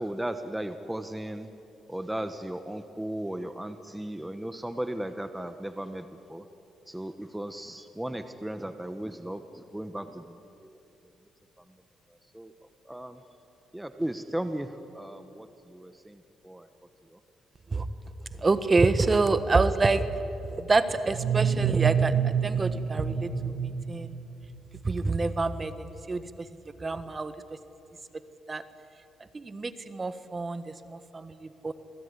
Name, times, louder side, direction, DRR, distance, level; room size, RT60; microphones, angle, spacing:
voice 1, 0.0-1.5 1.9-6.4 6.9-10.3 10.6-10.8 12.3-12.5 12.8-13.2 13.7-16.7 17.1-17.2, right 1 dB, 5° right, 9 dB, 1.1 m, -36 dB
voice 2, 18.4-20.0 20.5-22.1 22.4-23.3 23.9-24.1 24.8-26.2 26.8-27.3 28.5-28.6 29.3-30.6 30.9-31.3 31.6-31.7, right 3 dB, 30° right, 12 dB, 1.4 m, -26 dB
sound 1, 21.1-24.8, right 8 dB, 70° right, 1.2 m, -28 dB
27.5 x 19.0 x 9.8 m, 2.9 s
cardioid pair, 90°, 0 cm